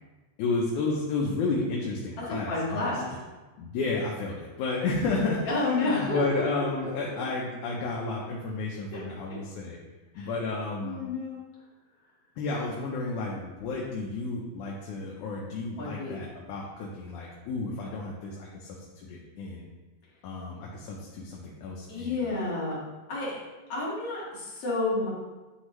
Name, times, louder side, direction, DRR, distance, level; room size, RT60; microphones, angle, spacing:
voice 1, 0.4-2.9 3.6-9.8 10.2-11.0 12.4-18.8 19.0-19.7 20.2-22.3, left 3 dB, 85° left, -3 dB, 2.2 m, -32 dB
voice 2, 2.3-3.1 5.4-6.2 6.8-6.9 8.9-9.0 9.3-9.4 10.1-10.3 10.8-11.4 15.8-16.2 21.9-22.8 23.1-23.4 23.7-25.1, left 2 dB, 55° left, -7 dB, 2.8 m, -30 dB
9.3 x 3.6 x 3.1 m, 1.2 s
omnidirectional pair, 3.4 m